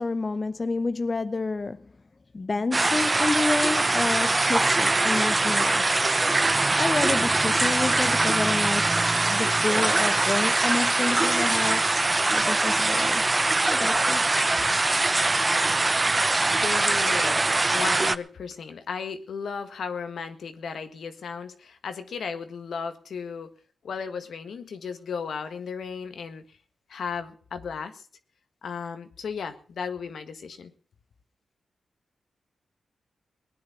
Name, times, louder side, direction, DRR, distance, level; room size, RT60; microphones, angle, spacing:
voice 1, 0.0-1.8 2.3-5.9 6.7-9.0 9.3-11.9 12.3-13.2 13.7-14.2, left 3 dB, 40° left, 0.8 m, -29 dB
sound 1, 2.7-18.2, right 2 dB, 30° right, 0.7 m, -22 dB
voice 2, 16.5-23.5 23.8-26.4 26.9-28.0 28.6-30.7, left 6 dB, 80° left, 1.7 m, -35 dB
19.0 x 10.0 x 5.9 m
cardioid pair, 70°, 0 cm